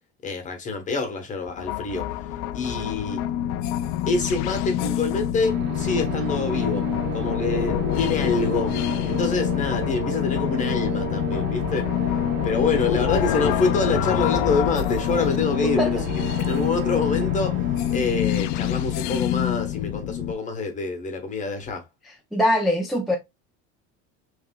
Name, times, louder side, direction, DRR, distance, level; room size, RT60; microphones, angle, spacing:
voice 1, 0.2-2.1 2.5-3.2 4.1-8.8 9.0-11.9 12.4-17.6 17.9-21.8, left 3 dB, 25° left, 1.1 m, -26 dB
sound 1, 1.5-20.3, left 11 dB, 60° left, 0.4 m, -26 dB
sound 2, 5.3-20.1, right 5 dB, 35° right, 1.6 m, -34 dB
voice 2, 22.3-23.2, left 1 dB, ahead, 0.5 m, -21 dB
5.5 x 3.3 x 2.2 m
cardioid pair, 170°, 31 cm